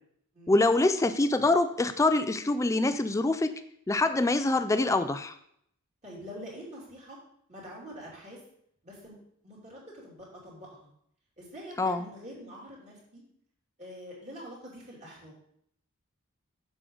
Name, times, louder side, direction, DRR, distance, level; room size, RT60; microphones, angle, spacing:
voice 1, 0.5-3.6 3.9-5.4 11.8-12.1, left 2 dB, 15° left, 10 dB, 0.3 m, -25 dB
voice 2, 6.0-7.2 7.5-8.4 8.8-9.2 9.4-10.2 10.4-10.9 11.4-13.2 13.8-15.3, equal, 30° right, -5 dB, 2.9 m, -45 dB
7.6 x 6.3 x 3.9 m, 0.70 s
head